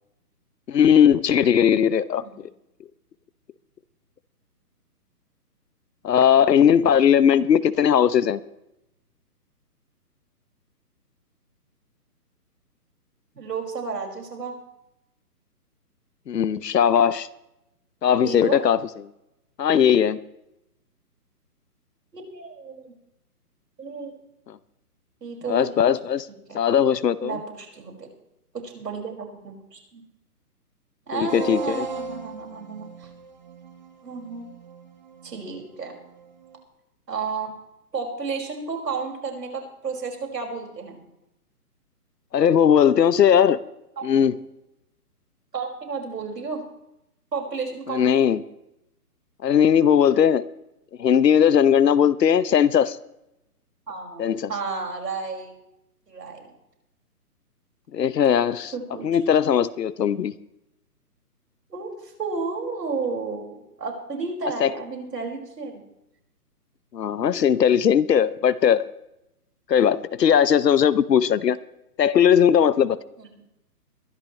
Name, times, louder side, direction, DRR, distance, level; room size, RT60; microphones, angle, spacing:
voice 1, 0.7-2.2 6.0-8.4 16.3-17.3 18.0-18.8 19.6-20.2 24.5-24.6 25.5-26.3 26.5-27.4 31.1-31.9 42.3-43.6 44.0-44.3 47.9-48.4 49.4-50.4 51.0-53.0 54.2-54.5 57.9-58.7 59.0-60.3 64.6-64.7 66.9-68.8 69.7-71.6 72.0-73.0, left 8 dB, 85° left, 16 dB, 0.9 m, -18 dB
voice 2, 13.3-14.6 18.2-18.6 22.1-22.9 23.8-24.1 25.2-25.8 26.5-26.6 27.2-28.1 28.5-30.0 31.1-33.1 34.0-34.5 35.2-35.9 37.1-37.5 37.9-41.0 44.0-44.2 45.5-46.7 47.3-48.3 53.9-55.5 56.1-56.5 58.3-59.1 61.7-65.8 73.2-73.3, right 4 dB, 85° right, 1 dB, 5.7 m, -32 dB
sound 1, 31.3-36.6, right 4 dB, 30° right, 1.1 m, -38 dB
23.0 x 12.5 x 3.2 m, 0.85 s
hypercardioid pair, 170°, 48 cm